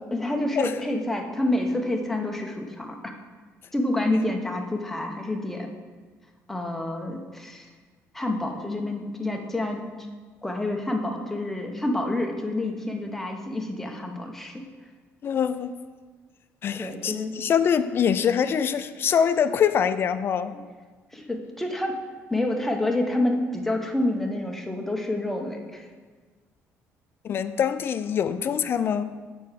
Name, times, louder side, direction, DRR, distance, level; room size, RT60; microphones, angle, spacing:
voice 1, 0.0-3.1 3.7-5.7 6.5-7.7 8.1-10.1 10.4-14.6 16.8-17.3 21.1-22.0 22.3-25.9, left 1 dB, 5° left, 2 dB, 0.8 m, -28 dB
voice 2, 15.2-15.7 16.6-20.5 27.2-29.1, left 8 dB, 45° left, 12 dB, 0.3 m, -24 dB
6.9 x 4.6 x 4.8 m, 1.5 s
cardioid pair, 120°, 6 cm